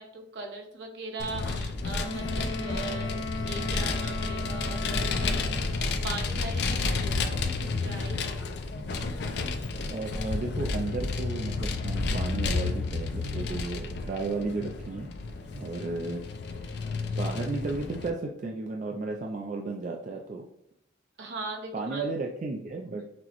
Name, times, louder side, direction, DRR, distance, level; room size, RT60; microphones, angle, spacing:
voice 1, 0.0-8.4 21.2-22.1, right 3 dB, 65° right, 2 dB, 0.9 m, -40 dB
Vehicle, 1.2-18.1, left 3 dB, 60° left, 0.4 m, -31 dB
Wind instrument woodwind instrument, 1.9-5.9, left 2 dB, 75° left, 0.8 m, -37 dB
voice 2, 9.9-15.1 15.5-16.2 16.5-16.8 17.2-20.4 21.7-23.1, right 3 dB, 40° right, 1 dB, 0.3 m, -34 dB
5.9 x 2.0 x 2.9 m, 0.77 s
head